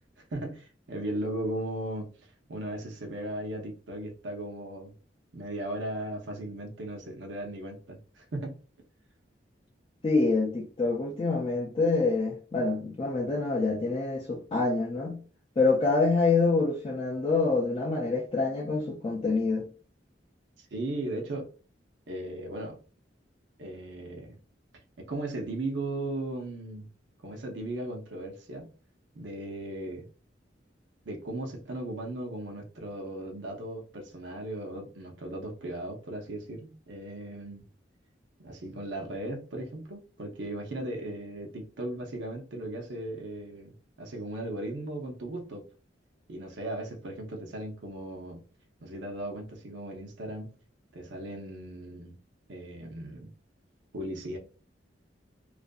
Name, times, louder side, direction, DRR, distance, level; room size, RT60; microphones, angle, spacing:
voice 1, 0.3-4.9 5.3-8.6 20.6-21.5 22.1-22.8 23.6-24.4 25.0-26.9 27.2-28.7 29.1-30.1 31.1-37.6 38.4-45.6 46.3-48.4 48.8-50.5 50.9-52.1 52.5-53.3 53.9-54.4, right 1 dB, 80° right, 0.6 m, -37 dB
voice 2, 10.0-15.2 15.6-19.7, left 3 dB, 30° left, 0.3 m, -26 dB
2.5 x 2.4 x 2.2 m
head